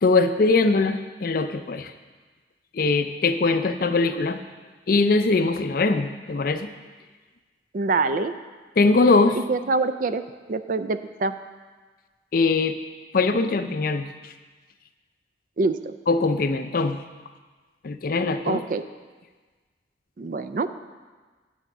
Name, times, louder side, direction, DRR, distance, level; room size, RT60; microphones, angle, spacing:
voice 1, 0.0-1.9 2.7-4.4 4.9-6.7 8.8-9.4 12.3-12.8 13.1-14.1 16.1-17.0 17.8-18.6, left 3 dB, 50° left, 9 dB, 0.5 m, -21 dB
voice 2, 7.7-8.3 9.5-10.2 10.5-11.3 15.6-15.9 18.5-18.8 20.2-20.7, right 3 dB, 45° right, 11 dB, 0.4 m, -25 dB
9.1 x 6.2 x 6.0 m, 1.4 s
head